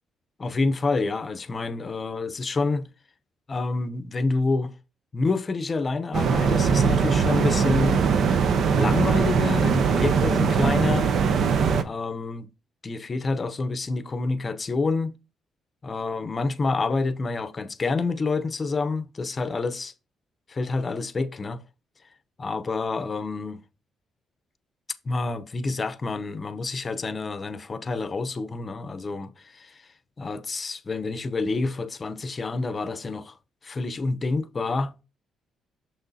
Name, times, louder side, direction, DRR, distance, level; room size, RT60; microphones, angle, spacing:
voice 1, 0.4-2.9 3.5-4.7 5.1-8.1 8.7-11.1 11.8-12.5 12.8-15.1 15.8-19.9 20.5-21.6 22.4-23.6 25.0-29.9 30.2-33.4 33.6-34.9, left 3 dB, 35° left, 0.7 m, -28 dB
sound 1, 6.1-11.8, right 6 dB, 65° right, 0.7 m, -21 dB
6.4 x 6.0 x 2.7 m
cardioid pair, 90°, 0 cm